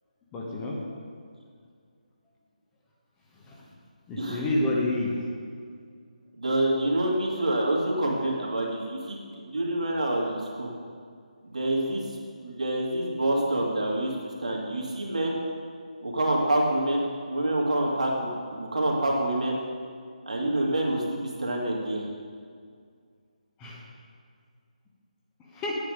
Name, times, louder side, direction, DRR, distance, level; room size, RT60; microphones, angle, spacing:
voice 1, 0.3-0.8 3.5-3.6 4.1-5.2 23.6-23.8 25.5-25.8, left 2 dB, 15° left, -4 dB, 1.3 m, -28 dB
voice 2, 6.4-9.2 9.4-10.7 11.4-12.0 12.4-15.4 16.0-19.6 20.3-22.0, right 1 dB, 60° right, -2 dB, 2.3 m, -27 dB
9.7 x 8.7 x 5.0 m, 2.1 s
figure-of-eight pair, 150°, 4 cm